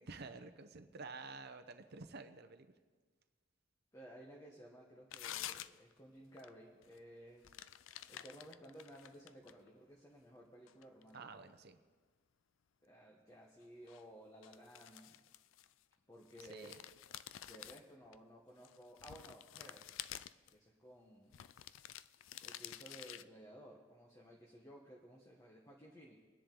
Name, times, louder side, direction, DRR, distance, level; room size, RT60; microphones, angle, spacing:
voice 1, 0.0-2.7 11.1-11.8 16.4-16.8, right 3 dB, 50° right, 8 dB, 0.8 m, -50 dB
voice 2, 3.9-7.5 8.1-11.2 12.8-15.2 16.1-16.7 17.4-19.9 20.5-21.4 22.4-26.2, equal, 15° left, -2 dB, 1.3 m, -56 dB
sound 1, 5.1-6.0 6.3-6.5 6.8-7.0 7.4-9.7 10.2-11.2 13.9-14.0 14.4-15.9 16.3-18.2 18.6-20.5 21.3-23.2, left 12 dB, 70° left, 0.4 m, -50 dB
24.0 x 10.0 x 3.8 m, 1.4 s
head